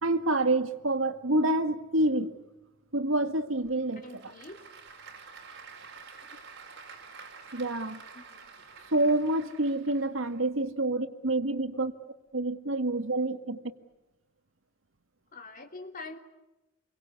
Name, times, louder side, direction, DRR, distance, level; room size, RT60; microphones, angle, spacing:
voice 1, 0.0-2.3 2.9-4.0 7.5-8.0 8.9-11.9 12.3-13.6, right 2 dB, 75° right, 1.8 m, -27 dB
Applause / Crowd, 3.6-10.4, right 5 dB, 60° right, 4.9 m, -49 dB
voice 2, 4.0-4.6 8.1-8.5 11.7-11.8 13.5-13.6 15.3-16.2, left 3 dB, 45° left, 3.2 m, -45 dB
28.0 x 23.5 x 8.3 m
head